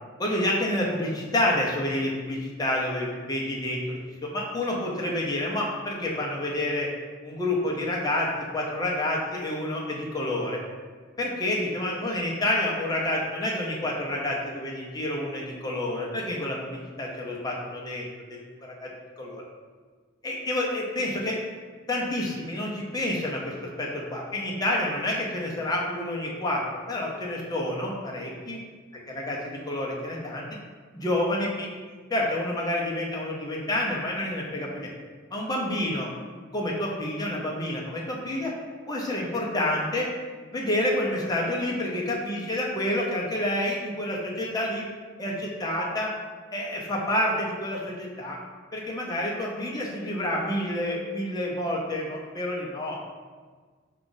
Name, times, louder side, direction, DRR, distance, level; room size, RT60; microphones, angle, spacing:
voice 1, 0.2-6.9 7.2-10.6 11.2-16.7 17.0-18.0 18.3-18.9 19.2-19.4 20.2-21.4 21.9-23.5 23.8-26.6 26.9-28.6 29.1-30.4 30.9-31.7 32.1-34.9 35.3-36.1 36.5-38.5 38.9-40.1 40.5-44.9 45.2-46.1 46.5-48.4 48.7-53.0, left 1 dB, 20° left, -3 dB, 0.7 m, -28 dB
4.8 x 2.4 x 3.9 m, 1.5 s
head